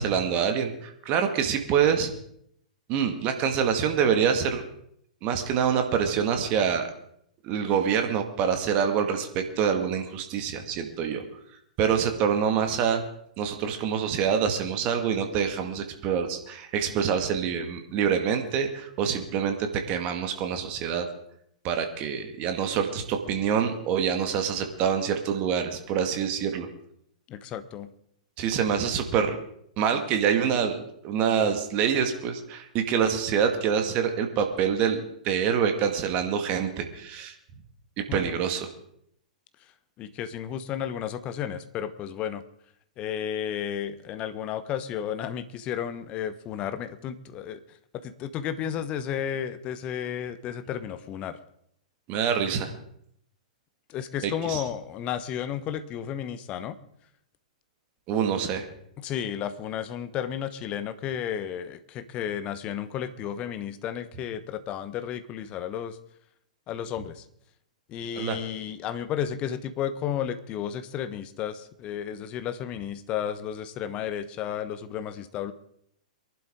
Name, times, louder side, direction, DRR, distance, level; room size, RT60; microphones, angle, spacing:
voice 1, 0.0-2.1 2.9-4.6 5.2-6.9 7.4-11.2 11.8-13.0 13.4-21.1 21.6-26.7 28.4-29.4 29.8-37.3 38.0-38.7 52.1-52.7 54.2-54.6 58.1-58.7 68.2-68.4, right 7 dB, 35° right, 6 dB, 2.0 m, -26 dB
voice 2, 27.3-27.9 38.1-38.4 40.0-42.4 43.0-47.6 47.9-51.4 53.9-56.8 59.0-66.0 66.7-67.2 67.9-75.5, left 9 dB, 30° left, 12 dB, 1.0 m, -33 dB
23.5 x 11.5 x 3.7 m, 0.72 s
figure-of-eight pair, 105°, 4 cm